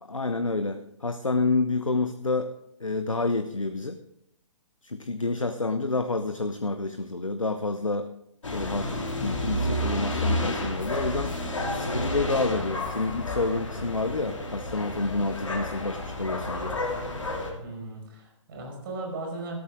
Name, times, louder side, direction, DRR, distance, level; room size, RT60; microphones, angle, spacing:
voice 1, 0.0-2.5 2.8-4.0 4.8-8.1 8.5-11.4 11.7-16.8, left 3 dB, 90° left, 10 dB, 0.7 m, -28 dB
sound 1, 8.4-17.5, left 1 dB, 70° left, 2.8 m, -31 dB
voice 2, 17.6-19.6, right 2 dB, 40° right, 0 dB, 5.2 m, -37 dB
13.5 x 12.5 x 3.7 m, 0.79 s
figure-of-eight pair, 125°, 16 cm